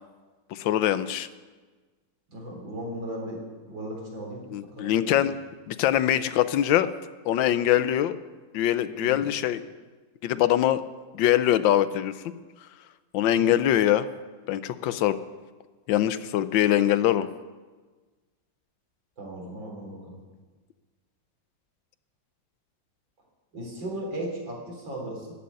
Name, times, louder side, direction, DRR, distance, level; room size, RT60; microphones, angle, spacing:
voice 1, 0.5-1.3 4.5-5.3 5.7-6.9 7.2-8.2 8.5-9.6 10.2-10.8 11.1-12.1 13.1-14.1 14.5-15.2 15.9-17.3, left 12 dB, 85° left, 14 dB, 1.4 m, -23 dB
voice 2, 2.3-3.4 3.7-4.5 4.7-4.9 9.0-9.3 13.2-13.5 19.2-20.2 23.5-25.3, right 1 dB, 85° right, -1 dB, 4.6 m, -36 dB
13.0 x 8.5 x 9.7 m, 1.3 s
omnidirectional pair, 2.0 m